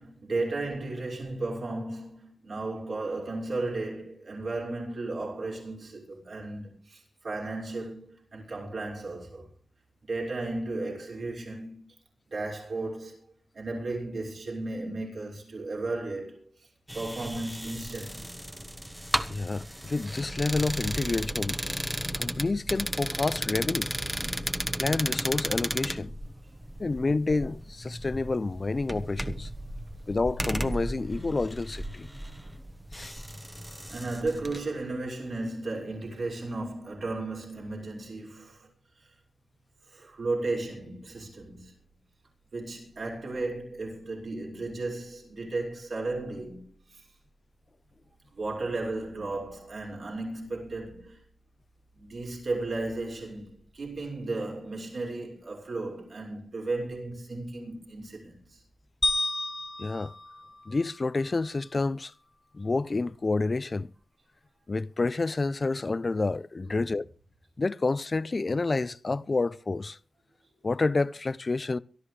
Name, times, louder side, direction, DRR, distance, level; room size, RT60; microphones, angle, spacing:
voice 1, 0.0-9.5 10.0-11.9 12.3-13.2 13.5-16.7 16.9-18.3 21.0-21.3 33.4-33.5 33.9-38.7 39.0-39.1 39.9-41.7 42.5-47.1 48.3-51.2 51.9-58.6 66.7-66.8, right 2 dB, 60° right, 5.9 m, -35 dB
sound 1, 16.9-34.6, right 1 dB, 10° right, 1.2 m, -34 dB
voice 2, 19.3-21.6 22.1-23.9 24.8-26.1 26.8-29.5 30.1-32.1 32.9-33.1 59.8-60.1 60.7-62.1 62.5-63.9 64.7-67.0 67.6-70.0 70.6-71.8, left 3 dB, 40° left, 0.6 m, -29 dB
sound 2, 59.0-61.4, left 1 dB, 15° left, 2.0 m, -32 dB
23.0 x 13.0 x 3.3 m
wide cardioid pair, 90°, 0 cm